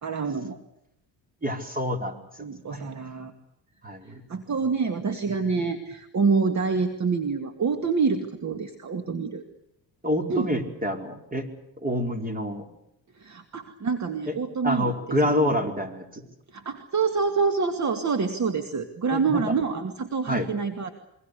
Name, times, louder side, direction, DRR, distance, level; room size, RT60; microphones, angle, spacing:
voice 1, 0.0-0.6 2.4-3.3 4.0-9.4 10.3-10.5 13.2-14.9 15.2-15.5 16.5-20.9, right 5 dB, 40° right, 7 dB, 2.3 m, -27 dB
voice 2, 1.4-2.8 3.8-4.2 10.0-11.5 11.8-12.6 14.3-14.4 14.6-16.3 19.1-19.4 20.3-20.5, equal, 20° right, 5 dB, 4.8 m, -27 dB
27.5 x 23.5 x 6.8 m, 0.83 s
cardioid pair, 100°, 42 cm